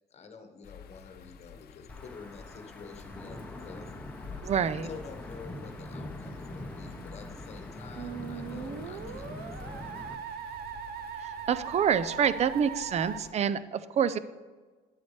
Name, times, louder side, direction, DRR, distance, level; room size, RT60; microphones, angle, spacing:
voice 1, 0.1-3.9 4.8-9.8, left 4 dB, 40° left, 6 dB, 1.3 m, -48 dB
sound 1, 0.6-13.3, left 8 dB, 65° left, 0.7 m, -52 dB
Wind / Thunder / Rain, 1.9-10.1, left 2 dB, 10° left, 1.0 m, -42 dB
voice 2, 4.4-4.9 11.2-14.2, right 8 dB, 40° right, 15 dB, 0.5 m, -27 dB
Musical instrument, 8.0-13.2, right 8 dB, 70° right, 0.8 m, -40 dB
11.0 x 8.2 x 3.4 m, 1.4 s
cardioid pair, 110°, 17 cm